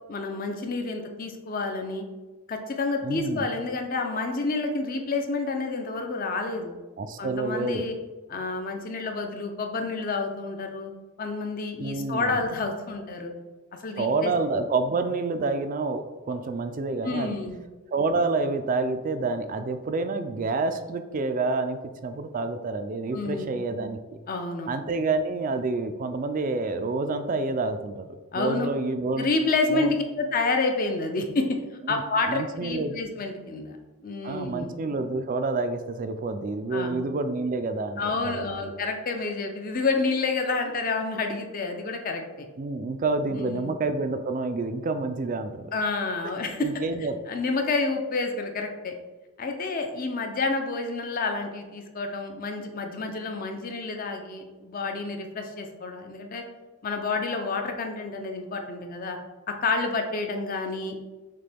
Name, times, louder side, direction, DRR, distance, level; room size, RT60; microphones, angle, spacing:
voice 1, 0.1-2.1 2.5-6.8 7.2-8.0 8.3-10.9 11.2-13.3 13.8-14.3 17.0-17.6 23.1-23.5 24.3-24.7 28.3-28.7 29.2-31.6 31.9-33.8 34.0-34.7 36.7-37.0 38.0-42.5 43.3-43.7 45.7-46.7 47.3-49.0 49.4-56.4 56.8-59.2 59.5-61.0, left 3 dB, 40° left, 4 dB, 0.5 m, -29 dB
voice 2, 3.0-3.5 7.0-7.8 11.8-12.5 14.0-17.4 17.9-24.2 24.7-29.3 29.7-30.0 31.8-32.0 32.3-33.0 34.2-38.7 42.6-45.7 46.6-47.2, right 3 dB, 40° right, 9 dB, 0.3 m, -28 dB
6.5 x 2.2 x 3.4 m, 1.2 s
head